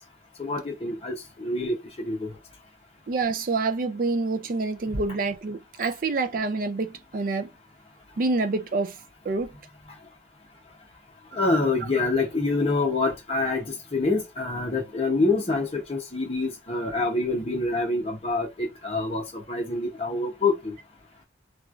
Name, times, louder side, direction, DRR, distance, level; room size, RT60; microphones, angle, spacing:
voice 1, 0.4-2.3 11.3-20.7, left 3 dB, 30° left, 0.8 m, -26 dB
voice 2, 3.1-7.5 8.2-9.0 9.3-9.5, right 3 dB, 45° right, 0.4 m, -27 dB
3.0 x 2.4 x 2.4 m
head